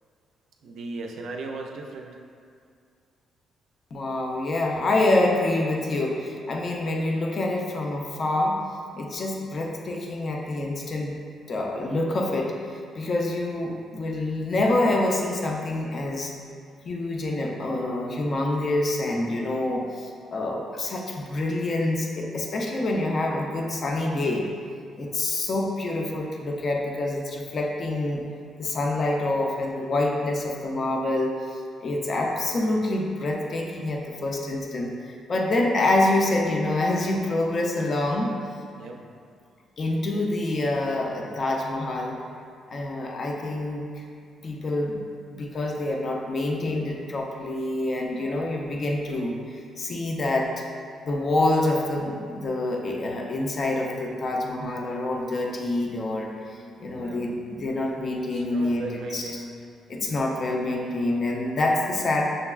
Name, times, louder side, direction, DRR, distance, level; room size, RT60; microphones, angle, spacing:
voice 1, 0.6-2.1 11.7-11.9 12.9-13.0 38.8-39.0 56.9-57.2 58.3-59.6 59.9-60.1, right 2 dB, 75° right, 1 dB, 0.3 m, -37 dB
voice 2, 3.9-8.6 9.0-11.2 11.5-12.5 13.0-16.3 16.9-24.5 25.0-28.2 28.6-31.3 31.8-38.3 39.8-42.2 42.7-43.9 44.4-45.0 45.3-50.5 51.0-59.3 59.9-62.3, left 2 dB, 45° left, 0 dB, 0.5 m, -26 dB
6.2 x 2.2 x 2.3 m, 2.3 s
cardioid pair, 90°, 0 cm